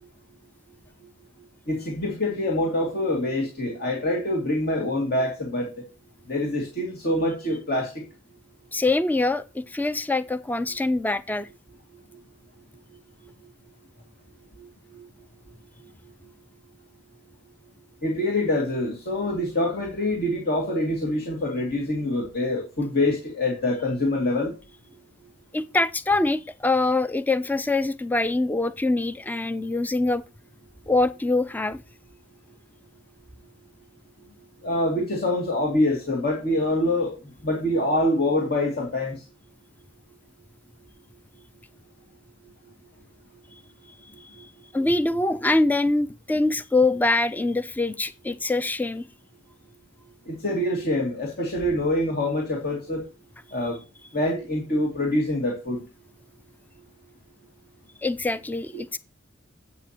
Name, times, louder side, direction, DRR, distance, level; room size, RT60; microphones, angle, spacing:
voice 1, 1.7-5.7 6.3-8.0 14.9-15.0 18.0-24.5 34.6-37.1 37.4-39.2 50.3-53.0 53.5-53.8 54.1-55.8, left 1 dB, 55° left, 2.4 m, -25 dB
voice 2, 8.7-11.5 25.5-30.2 30.9-31.8 44.4-44.5 44.7-49.0 58.0-59.0, left 2 dB, 10° left, 0.4 m, -24 dB
11.0 x 8.3 x 2.9 m
head